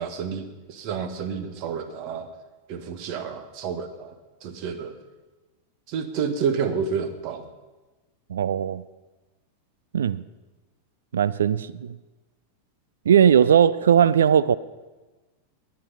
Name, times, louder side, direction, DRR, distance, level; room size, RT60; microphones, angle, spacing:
voice 1, 0.0-2.3 2.7-4.2 4.4-5.0 5.9-7.5, right 6 dB, 45° right, 1.4 m, -29 dB
voice 2, 8.3-8.8 9.9-10.2 11.1-12.0 13.1-14.6, right 8 dB, 65° right, 0.4 m, -19 dB
21.5 x 8.6 x 5.5 m
figure-of-eight pair, 90°, 0 cm